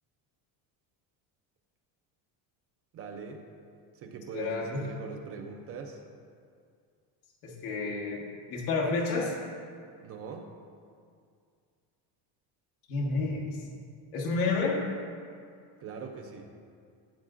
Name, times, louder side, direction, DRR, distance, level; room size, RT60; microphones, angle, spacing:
voice 1, 2.9-3.4 3.9-6.0 10.0-10.5 15.8-16.5, right 5 dB, 35° right, 3 dB, 0.5 m, -42 dB
voice 2, 4.3-4.8 7.4-8.2 8.5-9.3 12.9-13.6 14.1-14.8, left 3 dB, 85° left, -3 dB, 1.5 m, -30 dB
14.0 x 7.8 x 2.5 m, 2.2 s
cardioid pair, 170°, 43 cm